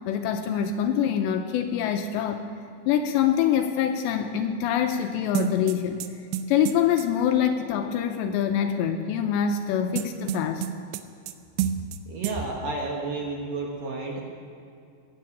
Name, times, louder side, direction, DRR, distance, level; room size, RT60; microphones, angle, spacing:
voice 1, 0.1-2.4 2.9-6.1 6.5-10.7, left 9 dB, 85° left, 5 dB, 2.7 m, -25 dB
sound 1, 5.3-7.1 10.0-11.3 11.6-12.0 12.2-12.4, right 10 dB, 85° right, 2.3 m, -29 dB
voice 2, 12.1-14.2, right 3 dB, 65° right, -1 dB, 2.4 m, -31 dB
17.0 x 7.7 x 8.6 m, 2.4 s
omnidirectional pair, 5.4 m